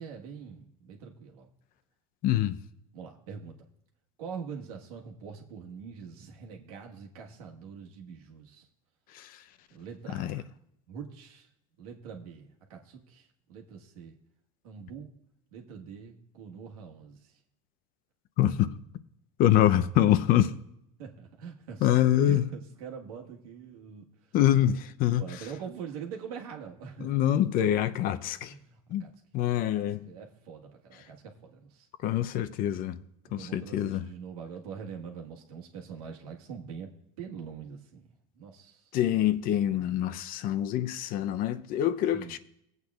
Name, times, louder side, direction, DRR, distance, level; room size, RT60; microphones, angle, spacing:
voice 1, 0.0-1.5 2.9-3.5 4.2-8.6 9.7-10.4 10.9-11.5 11.8-14.2 14.6-15.1 15.5-17.2 21.0-24.0 25.2-27.1 28.4-29.1 29.7-31.9 33.4-36.9 37.2-38.0 38.3-38.8 39.1-40.0 42.1-42.4, right 6 dB, 85° right, 1.5 m, -44 dB
voice 2, 2.2-2.6 9.1-9.3 10.1-10.4 18.4-18.7 19.4-20.5 21.8-22.5 24.3-25.2 27.0-28.5 28.9-29.0 29.3-30.1 32.0-33.0 33.3-34.1 38.9-42.4, left 12 dB, 50° left, 0.6 m, -25 dB
17.0 x 8.1 x 2.4 m
supercardioid pair, 110°, 18 cm